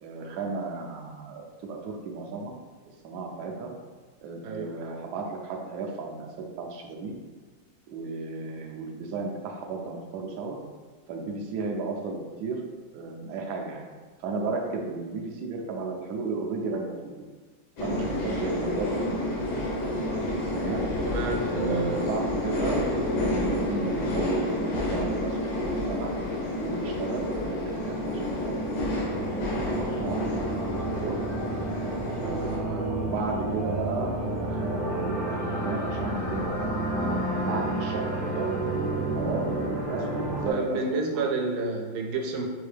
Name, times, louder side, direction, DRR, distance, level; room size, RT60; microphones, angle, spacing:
voice 1, 0.0-2.5 3.0-3.7 4.2-7.1 7.9-10.6 11.1-12.6 12.9-13.8 14.2-17.1 17.8-19.0 19.3-19.5 20.5-20.9 21.4-26.1 26.6-27.9 28.2-28.4 28.7-30.2 30.9-31.1 32.2-36.7 37.1-38.5 38.8-41.4, right 3 dB, 70° right, 1 dB, 1.1 m, -34 dB
sound 1, 17.8-32.6, left 1 dB, 80° left, 1.7 m, -29 dB
voice 2, 21.0-21.9 40.4-42.5, right 3 dB, 90° right, 1 dB, 1.4 m, -29 dB
sound 2, 27.8-40.5, right 1 dB, 45° right, 0.6 m, -31 dB
5.1 x 2.7 x 3.3 m, 1.4 s
omnidirectional pair, 2.2 m